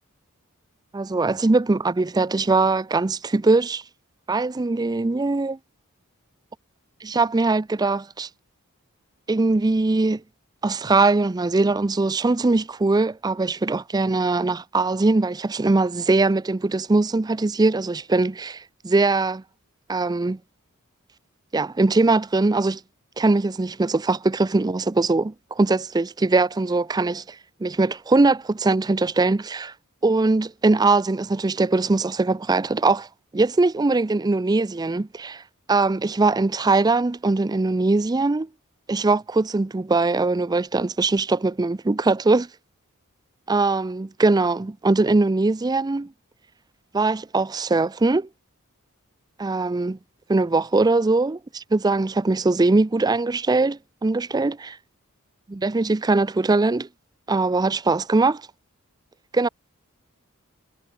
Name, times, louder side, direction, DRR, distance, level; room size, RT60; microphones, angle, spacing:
voice 1, 0.9-3.8 4.3-5.6 7.0-8.3 9.3-10.2 10.6-19.4 19.9-20.4 21.5-22.8 23.2-27.4 27.6-29.7 30.0-33.1 33.3-35.4 35.7-38.5 38.9-42.5 43.5-46.1 46.9-48.3 49.4-50.0 50.3-54.8 55.5-56.9 57.3-58.4 59.3-59.5, right 3 dB, 20° right, 0.4 m, -21 dB
head